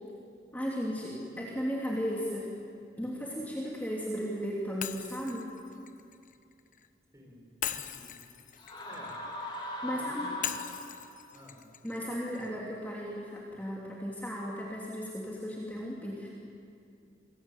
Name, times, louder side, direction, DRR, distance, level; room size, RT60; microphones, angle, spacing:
voice 1, 0.5-2.5 3.0-5.5 9.8-10.3 11.8-16.3, equal, 10° left, -4 dB, 3.2 m, -35 dB
Shatter, 4.8-6.9 7.6-9.7 10.4-12.5, left 9 dB, 45° left, 1.1 m, -40 dB
voice 2, 7.1-8.2 8.8-9.1 9.8-10.6 11.3-11.6, left 1 dB, 20° right, -1 dB, 6.8 m, -51 dB
sound 1, 8.6-11.2, left 1 dB, 30° left, 3.9 m, -39 dB
28.0 x 22.0 x 9.4 m, 2.5 s
head